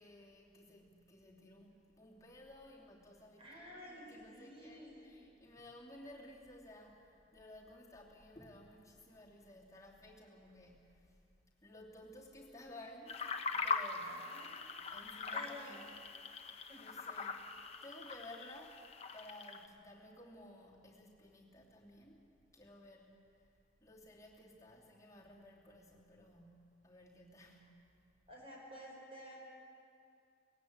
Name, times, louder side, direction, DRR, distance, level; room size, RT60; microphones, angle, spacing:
voice 1, 0.0-11.2 11.6-14.2 14.7-16.1 16.8-17.5 17.8-18.9 19.1-22.3 22.5-23.5 23.8-27.8, left 1 dB, 15° left, -4 dB, 2.8 m, -56 dB
voice 2, 3.4-5.2 14.0-14.5 15.3-15.8 16.7-16.8 28.3-29.4, equal, 30° right, -2 dB, 5.4 m, -52 dB
sound 1, 13.1-19.7, left 4 dB, 35° left, 1.0 m, -42 dB
19.0 x 16.5 x 8.7 m, 2.5 s
head